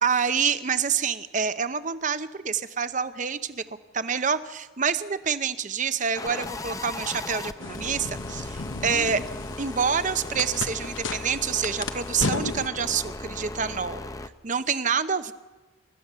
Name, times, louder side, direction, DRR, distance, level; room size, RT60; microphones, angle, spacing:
voice 1, 0.0-3.6 3.9-9.2 9.6-14.0 14.4-15.3, right 6 dB, 35° right, 12 dB, 0.8 m, -27 dB
sound 1, 6.1-14.3, left 2 dB, 15° left, 0.7 m, -37 dB
sound 2, 7.6-12.7, left 3 dB, 70° left, 1.1 m, -34 dB
29.0 x 14.5 x 6.8 m, 1.3 s
head